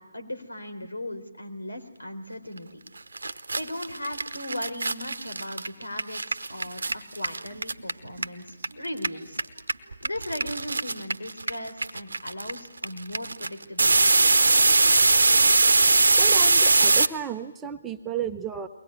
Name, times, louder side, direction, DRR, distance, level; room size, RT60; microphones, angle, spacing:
voice 1, 0.0-2.8 3.5-9.4 10.0-14.6, left 1 dB, 75° left, 6 dB, 3.9 m, -37 dB
sound 1, 2.9-3.0 3.2-8.7 8.9-17.1, right 3 dB, 65° right, 1.0 m, -21 dB
voice 2, 16.2-18.7, right 8 dB, 10° right, 5 dB, 0.8 m, -33 dB
22.5 x 19.0 x 9.9 m, 1.1 s
figure-of-eight pair, 145°, 0 cm